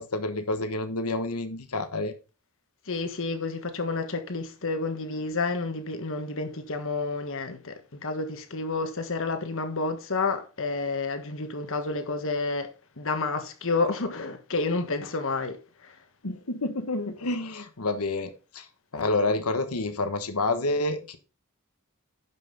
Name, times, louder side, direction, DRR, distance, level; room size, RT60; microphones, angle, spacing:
voice 1, 0.0-2.1 16.2-18.7 18.9-21.2, left 2 dB, 85° left, 1.3 m, -29 dB
voice 2, 2.9-7.7 8.0-12.7 13.0-15.6 15.8-15.9, left 3 dB, 60° left, 1.5 m, -30 dB
11.0 x 5.8 x 4.0 m
head